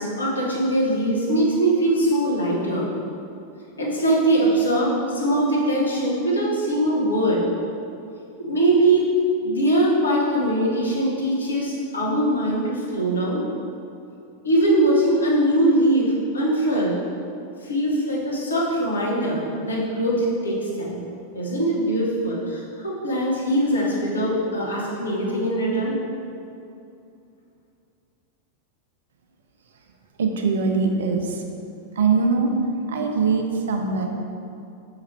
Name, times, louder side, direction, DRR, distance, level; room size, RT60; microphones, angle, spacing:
voice 1, 0.0-2.9 3.8-7.4 8.4-9.1 9.4-13.4 14.4-17.0 17.6-21.0 21.3-26.0, right 1 dB, 75° left, -4 dB, 1.2 m, -22 dB
voice 2, 30.2-31.4 32.0-32.5 32.9-34.1, right 4 dB, 65° right, 3 dB, 0.6 m, -22 dB
6.0 x 4.8 x 3.3 m, 2.6 s
figure-of-eight pair, 90°, 0 cm